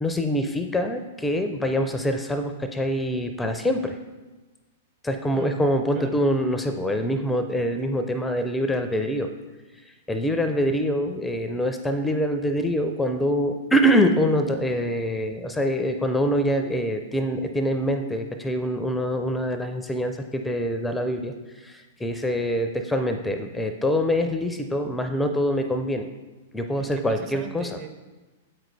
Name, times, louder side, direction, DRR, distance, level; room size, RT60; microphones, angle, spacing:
voice 1, 0.0-4.0 5.0-9.3 9.8-26.1 26.5-27.7, equal, 5° left, 6 dB, 0.4 m, -25 dB
voice 2, 26.8-27.9, right 5 dB, 40° right, 6 dB, 0.7 m, -39 dB
7.5 x 5.1 x 3.2 m, 1.2 s
hypercardioid pair, 110°, 0 cm